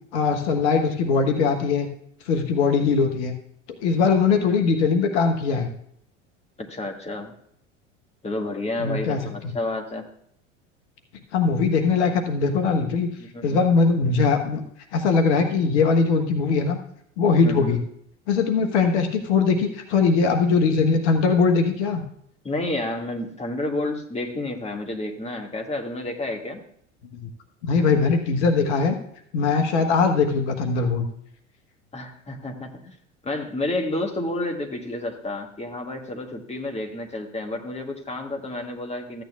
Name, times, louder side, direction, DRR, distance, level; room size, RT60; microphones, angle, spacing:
voice 1, 0.1-1.9 2.3-3.3 3.8-5.7 8.8-9.5 11.3-13.1 13.4-14.6 14.9-16.8 17.2-17.8 18.3-22.0 27.6-28.9 29.3-31.1, left 4 dB, 65° left, 6 dB, 1.2 m, -21 dB
voice 2, 6.6-7.3 8.2-10.0 13.2-13.6 17.4-17.8 22.4-26.6 31.9-33.0 33.2-39.2, left 2 dB, 15° left, 2 dB, 1.8 m, -30 dB
14.5 x 9.1 x 2.3 m, 0.68 s
hypercardioid pair, 75°, 37 cm